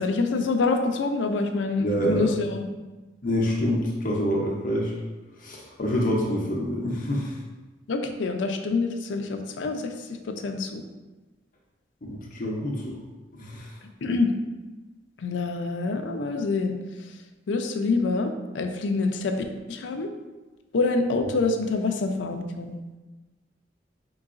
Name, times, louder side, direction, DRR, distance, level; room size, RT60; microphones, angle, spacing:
voice 1, 0.0-2.6 7.9-9.9 10.3-10.8 14.0-14.3 15.2-16.7 17.5-19.4 19.7-20.1 20.7-22.8, left 3 dB, 85° left, 5 dB, 0.5 m, -26 dB
voice 2, 1.8-2.3 3.2-4.9 5.4-7.4 12.0-13.0 13.3-13.7, equal, 50° left, -3 dB, 0.7 m, -26 dB
4.6 x 3.9 x 2.5 m, 1.2 s
head